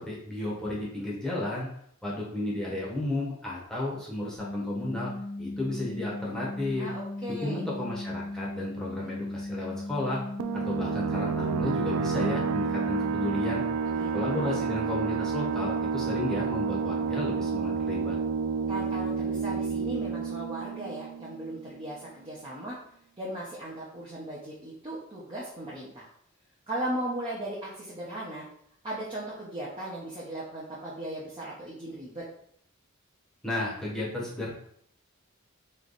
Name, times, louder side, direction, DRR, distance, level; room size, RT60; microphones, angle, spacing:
voice 1, 0.0-1.7 2.0-5.1 5.4-6.9 7.4-10.2 10.5-13.6 14.1-18.2 33.4-34.5, left 1 dB, 5° left, -6 dB, 1.0 m, -33 dB
sound 1, 4.4-13.6, left 2 dB, 40° right, 1.5 m, -37 dB
voice 2, 6.8-7.6 13.9-14.6 18.7-22.8 23.2-26.1 26.7-28.5 28.8-32.2, right 1 dB, 25° right, -6 dB, 0.8 m, -37 dB
sound 2, 10.4-21.7, right 6 dB, 80° right, 0.3 m, -30 dB
3.2 x 3.1 x 4.0 m, 0.67 s
head